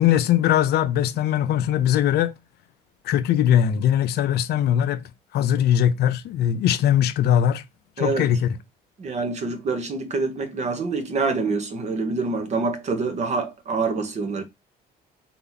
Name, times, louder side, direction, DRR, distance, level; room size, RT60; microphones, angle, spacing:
voice 1, 0.0-2.3 3.1-5.0 5.3-7.6 8.0-8.5, left 10 dB, 70° left, 0.6 m, -20 dB
voice 2, 8.0-8.3 9.0-14.4, right 4 dB, 40° right, 1.1 m, -26 dB
3.7 x 2.9 x 4.0 m
cardioid pair, 110°, 17 cm